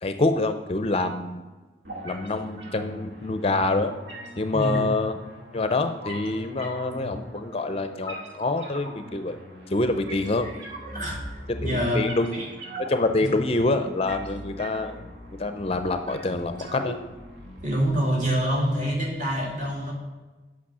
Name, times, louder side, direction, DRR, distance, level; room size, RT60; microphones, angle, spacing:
voice 1, 0.0-1.4 2.0-3.9 4.4-5.1 5.5-9.4 9.7-10.5 11.6-12.4 12.9-14.9 15.4-17.0, left 2 dB, 30° left, 8 dB, 0.4 m, -26 dB
sound 1, 1.8-17.8, equal, 75° right, 2.1 m, -40 dB
voice 2, 4.5-4.9 10.4-10.5 10.9-12.5 13.2-13.3 17.6-19.9, equal, 40° right, -3 dB, 2.5 m, -27 dB
8.6 x 5.9 x 6.1 m, 1.2 s
head